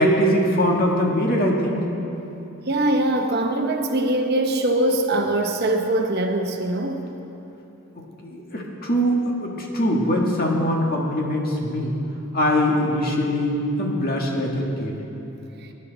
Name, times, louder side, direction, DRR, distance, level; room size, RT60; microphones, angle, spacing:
voice 1, 0.0-1.8 8.0-12.0 12.3-15.0, equal, 45° left, -1 dB, 1.7 m, -22 dB
voice 2, 2.7-7.1 15.6-15.7, right 1 dB, 50° right, 4 dB, 0.9 m, -22 dB
19.5 x 10.5 x 4.0 m, 3.0 s
head